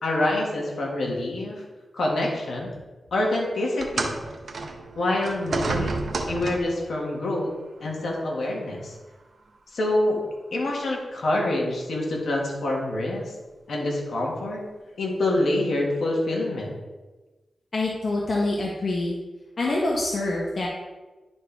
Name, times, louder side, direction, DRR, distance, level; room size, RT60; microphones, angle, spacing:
voice 1, 0.0-1.6 1.9-2.7 3.1-4.1 5.0-7.5 7.8-8.9 9.7-10.2 10.5-13.3 13.7-14.6 15.0-16.8, left 1 dB, 80° left, -1 dB, 1.9 m, -26 dB
sound 1, 3.8-6.9 7.8-8.0 8.9-9.0, right 3 dB, 70° right, 1.0 m, -30 dB
voice 2, 17.7-19.2 19.6-20.7, left 2 dB, 60° left, -3 dB, 1.2 m, -25 dB
11.0 x 4.5 x 3.5 m, 1.2 s
cardioid pair, 50°, 0 cm